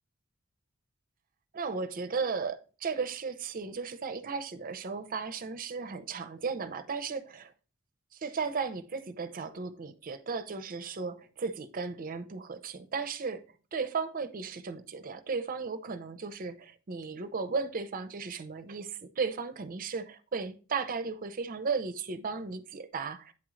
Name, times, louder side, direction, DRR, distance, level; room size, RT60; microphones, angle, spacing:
voice 1, 1.5-7.5 8.1-13.4 13.7-23.3, right 5 dB, 40° right, 0.5 m, -35 dB
8.5 x 3.7 x 3.1 m
head